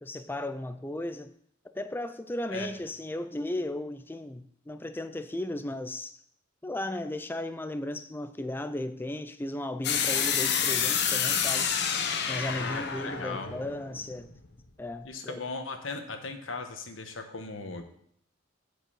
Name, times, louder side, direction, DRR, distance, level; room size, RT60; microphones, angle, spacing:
voice 1, 0.0-1.3 1.7-6.2 6.6-11.7 12.3-14.3 14.8-15.4, left 1 dB, 10° left, 0.4 m, -35 dB
sound 1, 9.8-14.7, left 7 dB, 60° left, 1.0 m, -29 dB
voice 2, 12.5-13.5 15.0-17.8, left 3 dB, 85° left, 1.3 m, -38 dB
8.4 x 5.4 x 7.7 m
head